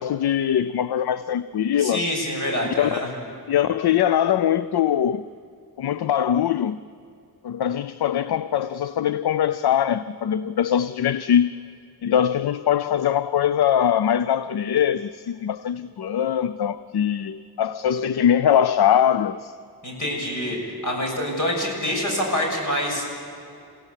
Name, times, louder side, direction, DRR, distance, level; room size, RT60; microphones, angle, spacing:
voice 1, 0.0-2.1 2.8-2.9 3.5-5.3 5.8-6.8 7.4-11.5 12.0-19.5, left 9 dB, 75° left, 0.6 m, -22 dB
voice 2, 1.8-3.1 19.8-20.6 20.8-23.1, left 1 dB, 50° left, 6.9 m, -26 dB
29.0 x 16.5 x 8.2 m
wide cardioid pair, 155°, 39 cm